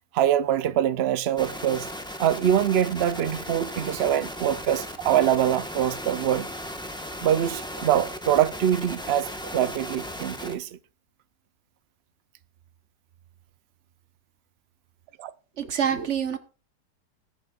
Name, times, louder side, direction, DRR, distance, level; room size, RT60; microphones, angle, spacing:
voice 1, 0.1-1.9 2.2-6.5 7.2-10.7 15.2-15.3, right 10 dB, 80° right, 0.5 m, -24 dB
sound 1, 1.4-10.5, equal, 5° left, 1.1 m, -36 dB
voice 2, 15.6-16.4, right 8 dB, 45° right, 1.3 m, -26 dB
21.0 x 8.4 x 2.4 m
omnidirectional pair, 1.8 m